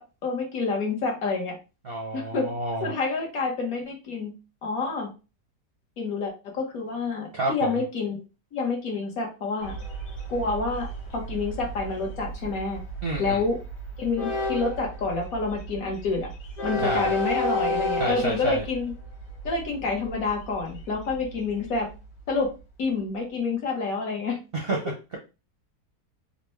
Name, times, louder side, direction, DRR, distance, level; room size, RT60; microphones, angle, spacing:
voice 1, 0.0-1.6 2.1-2.5 2.8-4.3 4.6-5.1 6.0-8.2 8.5-9.7 10.3-12.8 13.2-13.6 14.0-16.3 16.6-18.9 19.4-21.9 22.3-22.5 22.8-24.4, left 4 dB, 60° left, 1 dB, 1.3 m, -28 dB
voice 2, 1.8-2.9 7.3-7.8 13.0-13.4 16.8-17.1 18.0-18.6 24.5-25.2, right 2 dB, 50° right, -1 dB, 0.7 m, -29 dB
Train, 9.6-22.6, left 1 dB, 85° left, 1.7 m, -33 dB
4.0 x 2.2 x 3.1 m, 0.30 s
omnidirectional pair, 1.8 m